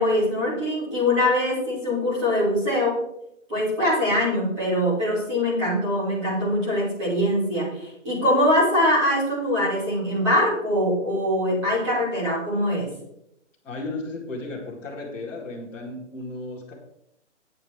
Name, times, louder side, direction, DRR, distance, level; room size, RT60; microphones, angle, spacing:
voice 1, 0.0-2.9 3.5-12.9, left 1 dB, 25° right, -9 dB, 5.7 m, -23 dB
voice 2, 13.6-16.7, left 2 dB, 5° left, -9 dB, 2.2 m, -34 dB
12.0 x 8.8 x 4.7 m, 0.78 s
hypercardioid pair, 180°, 37 cm